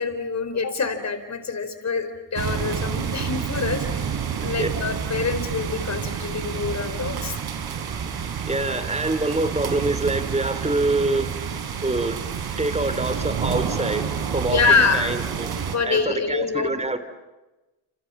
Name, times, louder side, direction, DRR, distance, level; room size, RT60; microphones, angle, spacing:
voice 1, 0.0-4.1 4.4-7.4 14.5-15.1 15.7-16.7, left 5 dB, 35° left, 9 dB, 4.5 m, -25 dB
sound 1, 2.4-15.8, right 7 dB, 55° right, 4.2 m, -29 dB
voice 2, 8.5-11.4 11.8-12.2 12.6-15.5 15.8-17.0, right 2 dB, 15° right, 12 dB, 3.2 m, -25 dB
28.0 x 28.0 x 7.3 m, 1.1 s
cardioid pair, 85°, 45 cm